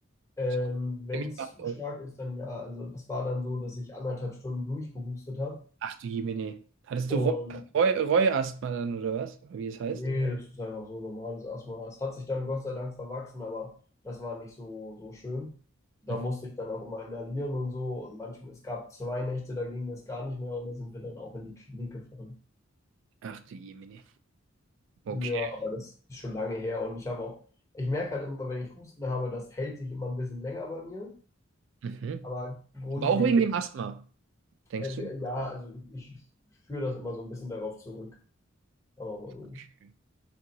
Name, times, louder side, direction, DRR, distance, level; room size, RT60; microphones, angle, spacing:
voice 1, 0.4-5.6 7.1-7.6 9.8-13.7 14.0-15.5 16.0-22.4 25.1-27.4 27.7-31.1 32.2-33.4 34.8-36.2 36.7-38.2 39.0-39.6, left 2 dB, 15° left, 0.8 m, -35 dB
voice 2, 1.1-1.8 5.8-6.6 6.9-7.3 7.7-10.0 23.2-24.0 25.1-25.5 31.8-32.3 33.0-34.0 34.7-34.9, right 5 dB, 65° right, 0.3 m, -29 dB
3.8 x 3.5 x 2.8 m
head